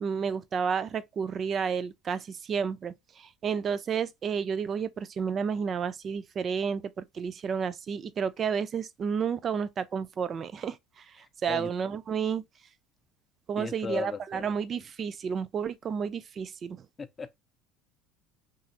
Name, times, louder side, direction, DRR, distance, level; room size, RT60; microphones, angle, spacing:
voice 1, 0.0-11.0 11.4-12.4 13.5-16.8, right 6 dB, 40° right, 0.4 m, -31 dB
voice 2, 11.2-11.7 13.6-14.5 17.0-17.4, left 5 dB, 25° left, 0.5 m, -37 dB
3.0 x 2.4 x 2.7 m
hypercardioid pair, 70°, 0 cm